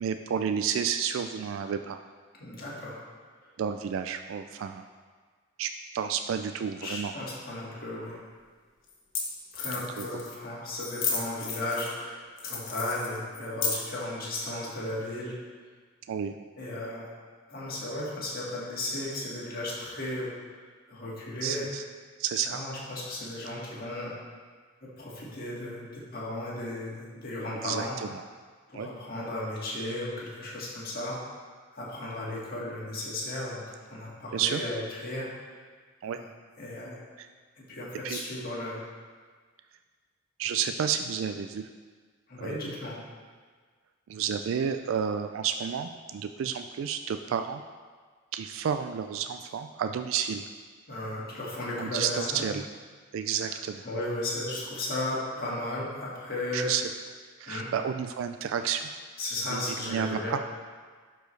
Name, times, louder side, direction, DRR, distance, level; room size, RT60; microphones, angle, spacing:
voice 1, 0.0-2.0 3.6-4.8 5.6-7.1 10.0-10.1 16.1-16.3 21.4-21.8 22.2-22.6 27.6-28.2 28.7-28.9 34.3-34.6 36.0-36.2 37.2-37.3 38.0-38.2 40.4-41.7 42.4-42.6 44.1-47.6 48.3-50.4 51.8-52.6 53.1-53.8 56.5-56.8 57.4-58.9 59.5-60.4, right 7 dB, 70° right, 7 dB, 0.3 m, -31 dB
voice 2, 2.4-3.0 6.8-8.2 9.5-15.4 16.6-17.1 17.5-20.3 20.6-21.7 22.5-24.1 24.8-28.0 28.7-31.2 31.7-35.6 36.0-36.3 36.6-36.9 37.7-38.9 42.3-43.0 50.9-52.4 53.8-56.7 57.5-57.7 59.2-60.4, left 1 dB, 45° left, -5 dB, 1.7 m, -35 dB
sound 1, 8.1-8.2 8.9-9.0 9.1-9.2 9.5-10.3 10.8-12.0 12.4-14.0, left 5 dB, 70° left, 1.2 m, -33 dB
11.5 x 4.6 x 3.2 m, 1.5 s
head